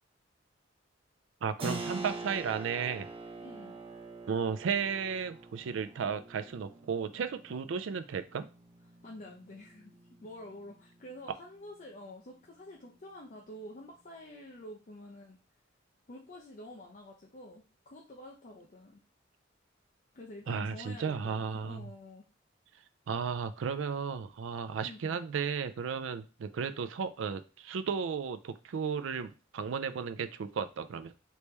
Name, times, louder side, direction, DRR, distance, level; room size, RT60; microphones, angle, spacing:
voice 1, 1.4-3.1 4.3-8.5 20.5-21.8 23.1-31.1, right 6 dB, 70° right, 10 dB, 0.4 m, -34 dB
Keyboard (musical), 1.6-12.0, right 2 dB, 30° right, 0.7 m, -45 dB
voice 2, 3.4-3.8 7.5-7.6 9.0-15.4 16.1-19.0 20.1-22.2 24.8-25.2, left 1 dB, 40° left, -1 dB, 0.6 m, -48 dB
3.2 x 3.0 x 3.2 m, 0.32 s
head